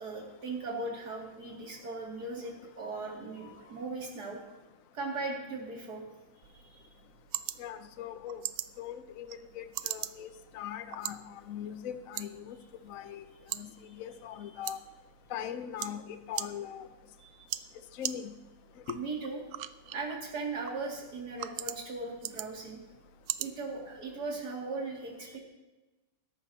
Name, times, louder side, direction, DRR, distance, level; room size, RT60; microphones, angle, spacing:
voice 1, 0.0-4.4 4.9-6.0 6.6-6.8 17.2-17.3 18.9-19.4 19.9-22.8 23.4-25.4, right 3 dB, 50° right, -1 dB, 2.9 m, -38 dB
sound 1, 6.4-24.4, right 13 dB, 80° right, 0.8 m, -43 dB
voice 2, 7.6-8.4 8.8-12.6 12.8-13.2 13.5-14.8 15.3-16.9 17.9-18.3 18.9-19.0, left 9 dB, 60° left, 10 dB, 0.9 m, -41 dB
21.0 x 11.5 x 2.8 m, 1.2 s
omnidirectional pair, 2.2 m